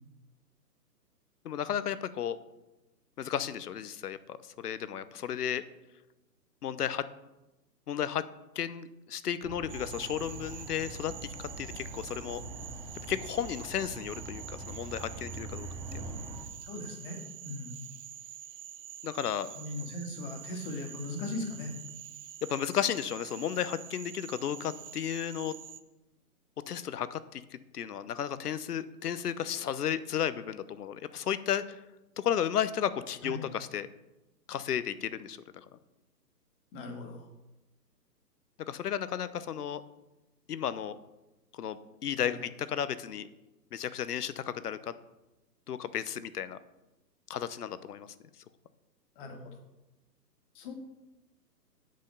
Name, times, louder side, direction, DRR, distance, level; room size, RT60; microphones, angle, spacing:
voice 1, 1.4-2.4 3.2-5.6 6.6-7.0 7.9-8.2 8.6-11.1 11.6-12.4 13.1-15.7 15.9-16.1 19.0-19.5 22.4-25.5 26.7-31.8 32.2-33.9 34.5-35.6 38.7-39.8 40.5-41.0 41.5-43.3 43.7-44.9 45.7-46.6 47.3-48.1, left 9 dB, 65° left, 15 dB, 0.9 m, -33 dB
sound 1, 9.4-16.5, right 2 dB, 10° right, 0.7 m, -43 dB
Cricket / Frog, 9.7-25.8, right 10 dB, 50° right, 0.9 m, -47 dB
voice 2, 16.6-17.8 19.6-21.7 33.2-33.5 36.7-37.3 42.2-42.4 49.2-49.4 50.5-50.7, left 2 dB, 30° left, 3 dB, 2.0 m, -39 dB
8.9 x 5.6 x 6.7 m, 1.0 s
hypercardioid pair, 135°, 50 cm